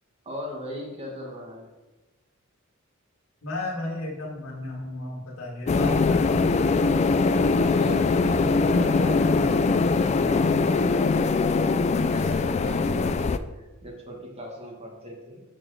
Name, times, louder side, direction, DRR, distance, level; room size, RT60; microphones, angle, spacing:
voice 1, 0.2-1.7 7.1-15.4, equal, 30° right, 0 dB, 1.5 m, -39 dB
voice 2, 3.4-6.8, left 1 dB, 90° left, -1 dB, 2.2 m, -34 dB
sound 1, 5.7-13.4, left 4 dB, 30° left, 0.3 m, -22 dB
6.4 x 4.5 x 6.3 m, 1.1 s
head